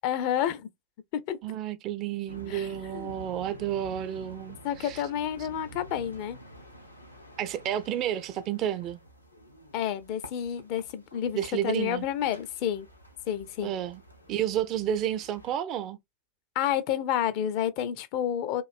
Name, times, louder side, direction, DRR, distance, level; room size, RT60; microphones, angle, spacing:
voice 1, 0.0-0.7 1.1-1.4 2.5-3.1 4.6-6.4 9.7-12.9 13.3-13.7 16.6-18.6, left 10 dB, 45° left, 0.4 m, -30 dB
voice 2, 1.4-5.0 7.4-9.0 11.3-12.1 13.6-14.0 14.3-16.0, right 10 dB, 35° right, 0.4 m, -31 dB
sound 1, 2.3-15.5, equal, 90° left, 0.7 m, -49 dB
3.0 x 2.5 x 2.5 m
figure-of-eight pair, 90°, 0 cm